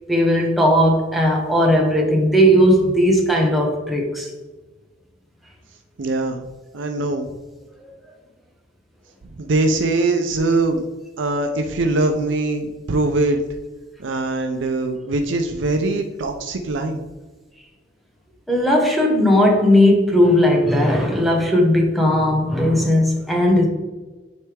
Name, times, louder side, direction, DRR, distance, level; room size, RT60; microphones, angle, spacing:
voice 1, 0.1-4.3 7.8-7.9 18.5-23.7, equal, ahead, -1 dB, 1.0 m, -17 dB
voice 2, 6.0-6.4 6.7-7.3 9.4-10.8 11.2-13.4 14.0-17.0, right 2 dB, 70° right, 5 dB, 0.5 m, -22 dB
9.0 x 3.3 x 3.4 m, 1.2 s
head